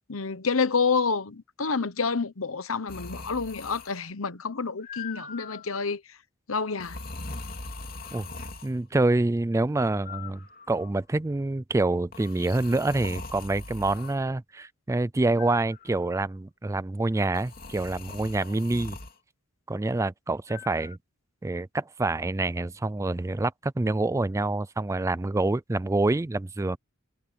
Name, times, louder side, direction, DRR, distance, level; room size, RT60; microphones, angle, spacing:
voice 1, 0.1-6.0 6.5-7.0, left 5 dB, 80° left, 1.1 m, -28 dB
sound 1, 2.9-4.1 4.8-5.7 6.8-8.8 10.0-11.0 12.1-14.2 15.4-16.1 17.3-19.2 20.5-21.0, left 3 dB, 45° left, 3.0 m, -41 dB
voice 2, 8.6-10.4 10.7-19.0 19.7-21.0 21.4-26.8, right 2 dB, 15° right, 0.4 m, -26 dB
head